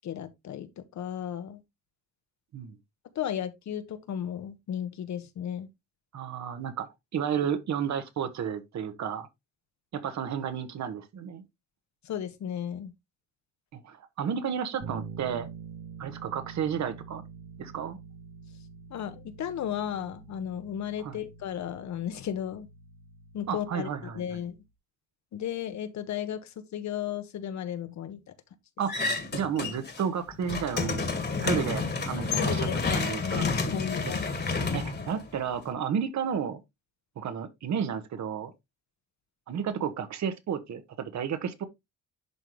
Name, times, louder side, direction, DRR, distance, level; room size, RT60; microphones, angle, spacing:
voice 1, 0.0-1.6 3.1-5.7 12.0-12.9 18.9-22.7 23.3-23.9 24.1-24.5 25.3-28.2 32.5-34.3 34.6-34.8, left 9 dB, 65° left, 1.2 m, -34 dB
voice 2, 6.1-9.3 9.9-11.4 13.7-15.5 16.0-17.2 17.6-18.0 21.0-21.3 23.5-24.2 28.8-28.9 29.3-31.1 31.4-32.7 32.9-33.5 34.3-34.4 34.7-36.6 37.1-38.5 39.5-41.6, right 7 dB, 65° right, 1.5 m, -32 dB
Bass guitar, 14.8-24.7, right 6 dB, 80° right, 1.4 m, -46 dB
sound 1, 28.9-30.0 30.3-35.7, left 4 dB, 35° left, 1.8 m, -30 dB
11.0 x 3.8 x 3.1 m
cardioid pair, 90°, 30 cm